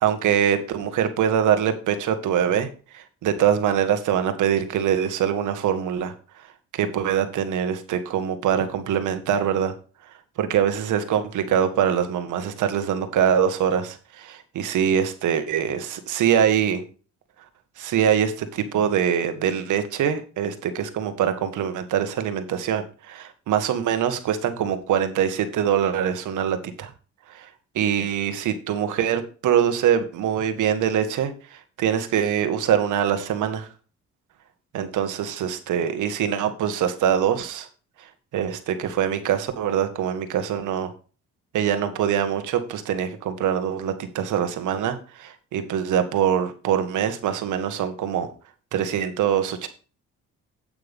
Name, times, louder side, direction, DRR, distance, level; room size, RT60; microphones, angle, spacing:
voice 1, 0.0-2.7 2.9-6.1 6.7-9.7 10.4-16.8 17.8-26.9 27.3-27.5 27.8-33.7 34.7-37.7 38.3-40.9 41.5-48.3 48.7-49.7, right 9 dB, 80° right, 9 dB, 1.8 m, -23 dB
9.1 x 9.0 x 3.7 m, 0.36 s
cardioid pair, 90°, 30 cm